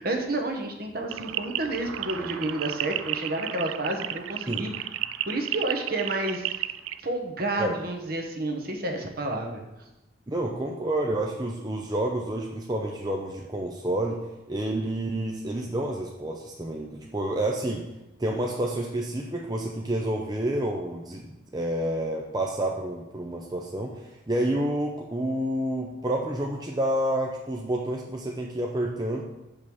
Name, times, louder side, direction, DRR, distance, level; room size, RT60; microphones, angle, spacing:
voice 1, 0.0-4.7 5.2-6.5 7.0-9.6, right 2 dB, 50° right, 2 dB, 1.1 m, -30 dB
sound 1, 1.1-7.0, right 12 dB, 85° right, 0.4 m, -33 dB
voice 2, 10.3-14.2 14.5-17.8 18.2-29.2, right 1 dB, 20° right, -1 dB, 0.6 m, -29 dB
6.9 x 5.4 x 6.2 m, 0.98 s
head